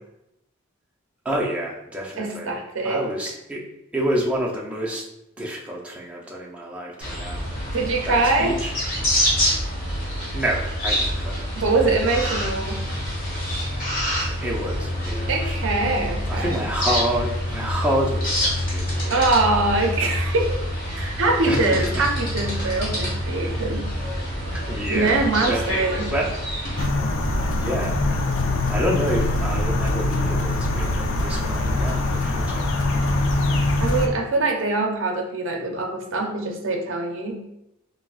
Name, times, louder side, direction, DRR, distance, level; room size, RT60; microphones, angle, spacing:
voice 1, 1.2-2.6 2.8-3.6 3.9-5.0 5.4-7.5 8.0-8.7 10.3-11.4 14.4-15.9 16.3-19.1 21.5-22.1 24.5-26.3 27.6-28.0 28.7-32.7, right 1 dB, 5° right, -4 dB, 0.4 m, -28 dB
voice 2, 2.2-3.0 7.7-8.5 11.6-12.9 15.3-16.6 19.1-20.6 20.9-23.9 24.9-26.1 33.8-37.4, right 3 dB, 60° right, 2 dB, 0.5 m, -23 dB
sound 1, 7.0-26.8, equal, 40° left, 1.2 m, -26 dB
sound 2, 26.8-34.1, left 2 dB, 60° left, 0.3 m, -23 dB
3.7 x 2.0 x 2.4 m, 0.83 s
head